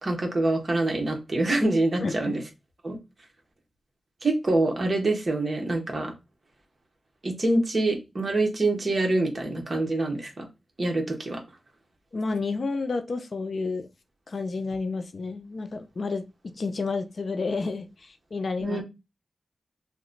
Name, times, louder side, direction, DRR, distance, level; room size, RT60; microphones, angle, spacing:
voice 1, 0.0-2.4 2.8-3.0 4.2-6.1 7.2-10.4 10.8-11.4 18.6-18.8, right 2 dB, 40° right, 1.0 m, -25 dB
voice 2, 2.0-2.3 12.1-13.9 14.3-16.2 16.6-18.8, left 3 dB, 55° left, 0.4 m, -30 dB
2.8 x 2.2 x 3.7 m
wide cardioid pair, 115°, 0 cm